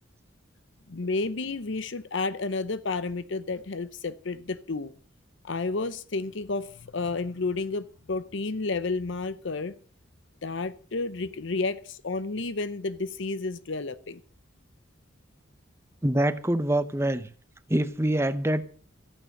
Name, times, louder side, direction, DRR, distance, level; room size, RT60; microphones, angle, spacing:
voice 1, 0.9-4.9 5.4-9.7 10.4-14.2, left 3 dB, 65° left, 0.7 m, -31 dB
voice 2, 16.0-17.3 17.7-18.7, right 1 dB, 10° right, 0.8 m, -25 dB
14.5 x 9.5 x 6.5 m
head